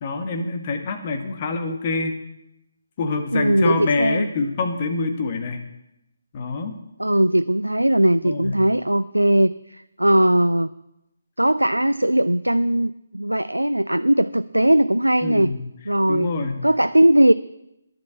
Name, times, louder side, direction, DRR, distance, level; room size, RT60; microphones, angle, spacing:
voice 1, 0.0-2.1 3.0-5.6 6.3-6.8 8.2-8.6 15.2-15.6 16.1-16.6, left 3 dB, 30° left, 6 dB, 1.5 m, -26 dB
voice 2, 3.3-4.3 7.0-10.7 11.4-15.5 15.9-16.3 16.6-17.3, right 1 dB, 85° right, 14 dB, 0.3 m, -19 dB
10.5 x 7.1 x 8.4 m, 0.89 s
figure-of-eight pair, 145°, 0 cm